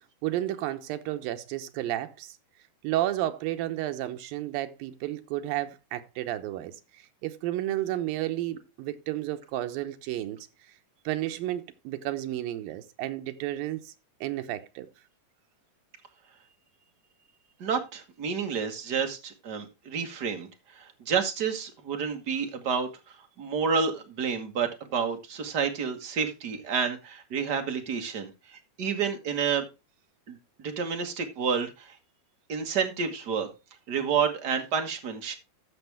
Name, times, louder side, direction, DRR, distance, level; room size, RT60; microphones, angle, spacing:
voice 1, 0.2-2.4 2.8-10.5 11.1-13.9 14.2-14.9, right 14 dB, 85° right, 2.7 m, -32 dB
voice 2, 17.6-20.5 20.7-22.9 23.4-29.7 30.3-31.9 32.5-33.5 33.9-35.3, right 6 dB, 45° right, 1.5 m, -29 dB
13.5 x 6.2 x 3.4 m
omnidirectional pair, 4.0 m